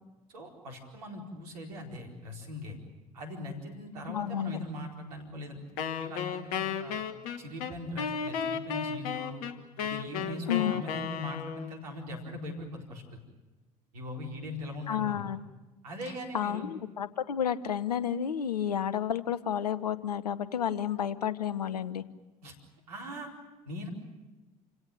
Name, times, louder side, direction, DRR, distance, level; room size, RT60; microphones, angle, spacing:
voice 1, 0.3-2.8 3.1-5.6 6.0-7.0 7.4-9.4 9.8-13.2 13.9-15.2 15.8-16.7 22.4-22.5 22.9-23.3 23.6-23.9, left 1 dB, 80° right, 0 dB, 4.6 m, -40 dB
voice 2, 4.1-4.5 10.5-10.8 14.9-15.4 16.3-22.0, left 9 dB, 85° left, 16 dB, 0.9 m, -31 dB
Wind instrument woodwind instrument, 5.8-11.8, left 7 dB, 70° left, 1.6 m, -34 dB
28.5 x 17.0 x 9.2 m, 1.1 s
figure-of-eight pair, 60°, 20 cm